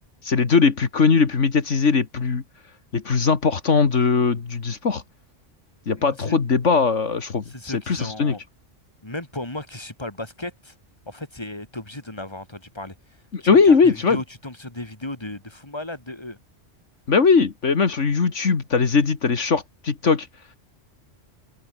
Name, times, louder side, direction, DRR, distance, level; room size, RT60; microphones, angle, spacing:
voice 1, 0.2-2.4 2.9-5.0 5.9-8.4 13.3-14.2 17.1-20.3, left 5 dB, 75° left, 2.2 m, -20 dB
voice 2, 5.9-6.4 7.5-8.4 9.0-10.7 11.1-13.0 13.4-16.4, left 1 dB, 20° left, 3.4 m, -35 dB
omnidirectional pair, 1.3 m